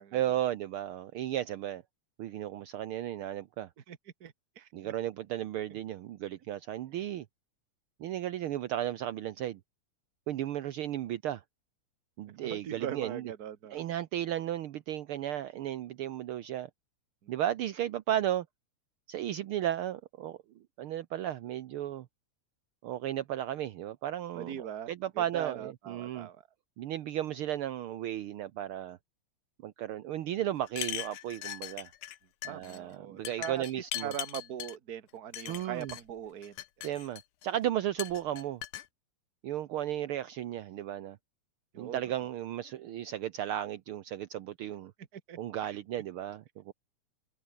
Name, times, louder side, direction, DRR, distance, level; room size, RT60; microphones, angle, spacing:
voice 1, 0.1-1.8 2.2-3.7 4.7-7.2 8.0-9.6 10.3-11.4 12.2-13.3 13.7-16.7 17.3-18.5 19.1-20.4 20.8-22.1 22.8-24.6 24.9-26.3 26.8-29.0 29.6-31.9 32.4-34.1 35.5-35.9 36.8-38.6 39.4-41.2 41.8-44.9 45.4-46.7, right 12 dB, 75° right, 1.3 m, -34 dB
voice 2, 3.9-4.9 5.7-5.8 12.4-13.8 17.2-17.3 24.3-24.9 25.1-26.4 32.5-36.6 41.7-42.1 45.1-45.4 45.6-45.8, right 9 dB, 40° right, 1.4 m, -41 dB
sound 1, 30.7-32.2 32.4-32.8 33.2-34.8 35.3-36.0 36.4-37.5 38.0-38.9, left 14 dB, 85° left, 2.6 m, -40 dB
omnidirectional pair, 3.5 m